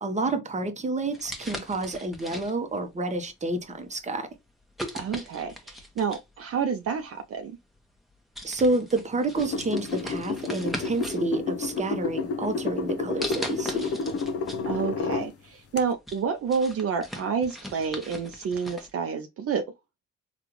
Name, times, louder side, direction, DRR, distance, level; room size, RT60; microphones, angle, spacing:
voice 1, 0.0-4.3 8.4-13.9, right 2 dB, 25° right, 0.8 m, -29 dB
sound 1, 1.1-2.8 3.5-3.7 4.8-6.3 7.4-7.5 8.0-8.1 8.3-11.2 11.6-12.3 13.2-14.6 15.0-15.1 15.6-18.9, equal, ahead, 1.0 m, -39 dB
voice 2, 4.9-7.6 14.7-19.6, right 6 dB, 50° right, 0.5 m, -29 dB
sound 2, 9.4-15.3 15.8-15.9, left 4 dB, 50° left, 0.7 m, -30 dB
3.5 x 2.4 x 2.9 m
cardioid pair, 90°, 30 cm